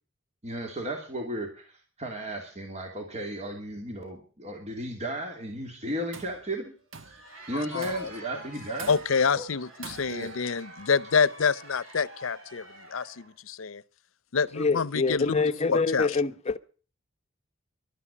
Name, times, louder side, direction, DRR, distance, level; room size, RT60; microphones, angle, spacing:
voice 1, 0.4-6.7 7.1-7.2 7.5-9.0 9.4-9.5 10.1-10.3, right 1 dB, 35° right, 2.6 m, -34 dB
Tools, 5.9-6.4 6.9-7.3 7.8-8.3 8.8-9.3 9.8-10.4, right 5 dB, 70° right, 1.3 m, -45 dB
Crowd, 6.8-13.3, right 1 dB, 90° right, 7.2 m, -48 dB
voice 2, 7.5-8.1 8.9-12.7 12.9-13.8 14.3-15.4 15.6-16.1, left 5 dB, 85° left, 0.7 m, -27 dB
voice 3, 14.5-16.6, left 4 dB, 30° left, 0.8 m, -26 dB
12.0 x 9.9 x 10.0 m
head